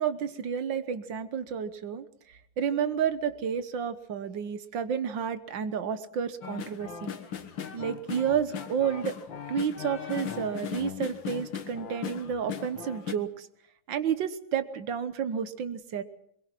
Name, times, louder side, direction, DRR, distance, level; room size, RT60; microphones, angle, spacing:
voice 1, 0.0-2.1 2.6-7.1 7.7-9.2 9.5-13.5 13.9-16.0, right 8 dB, 75° right, 12 dB, 1.8 m, -31 dB
sound 1, 6.4-13.1, left 7 dB, 80° left, 2.1 m, -38 dB
22.0 x 22.0 x 5.9 m, 0.71 s
omnidirectional pair, 2.1 m